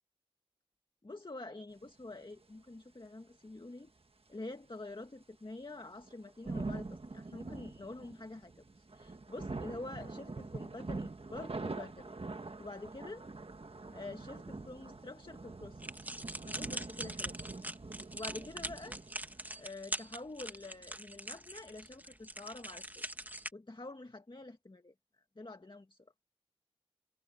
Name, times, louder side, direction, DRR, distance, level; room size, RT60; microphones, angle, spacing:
voice 1, 1.0-3.9 4.3-12.1 12.6-13.2 13.9-16.1 16.5-17.4 18.1-19.0 19.6-26.1, left 2 dB, 50° left, 1.8 m, -47 dB
sound 1, 6.0-19.7, right 3 dB, 70° right, 1.4 m, -44 dB
sound 2, 15.8-23.5, right 1 dB, 15° right, 1.6 m, -43 dB
wide cardioid pair, 45°, 10 cm